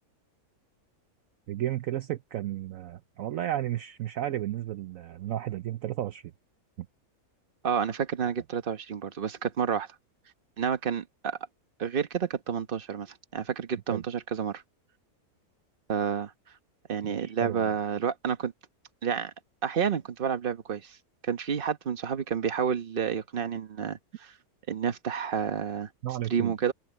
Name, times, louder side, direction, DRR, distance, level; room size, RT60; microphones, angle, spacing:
voice 1, 1.5-6.3 6.8-6.9 13.9-14.0 17.1-17.8 26.0-26.5, right 13 dB, 70° right, 1.0 m, -33 dB
voice 2, 7.6-9.9 10.6-11.4 11.8-14.6 15.9-16.3 16.9-18.5 19.0-19.3 19.6-21.0 21.2-24.3 24.7-25.9 26.3-26.7, right 7 dB, 40° right, 1.2 m, -30 dB
omnidirectional pair, 1.6 m